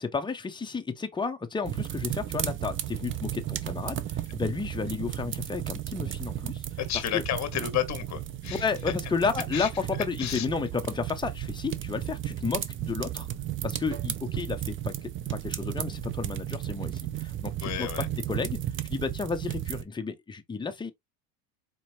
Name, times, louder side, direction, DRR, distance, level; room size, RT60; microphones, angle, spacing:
voice 1, 0.0-6.6 7.1-7.2 8.6-13.3 13.6-17.9 18.3-18.6 18.9-20.9, left 4 dB, 10° left, 0.7 m, -32 dB
sound 1, 1.6-19.8, right 12 dB, 30° right, 0.5 m, -34 dB
voice 2, 6.8-8.7 9.5-9.7 10.2-10.5 17.6-18.1, left 11 dB, 35° left, 1.2 m, -31 dB
sound 2, 13.9-14.2 15.8-16.0 17.8-18.0, right 8 dB, 70° right, 1.5 m, -45 dB
4.4 x 2.9 x 2.7 m
supercardioid pair, 105°, 47 cm